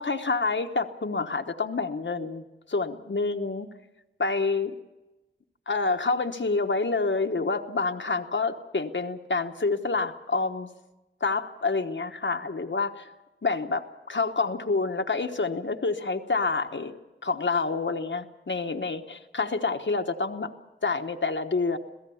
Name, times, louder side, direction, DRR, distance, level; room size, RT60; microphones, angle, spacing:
voice 1, 0.0-3.7 4.2-4.7 5.7-10.7 11.2-13.1 13.4-16.9 17.2-20.5 20.8-21.8, left 3 dB, 65° left, 5 dB, 1.1 m, -28 dB
26.5 x 16.5 x 7.1 m, 1.1 s
wide cardioid pair, 55°, 21 cm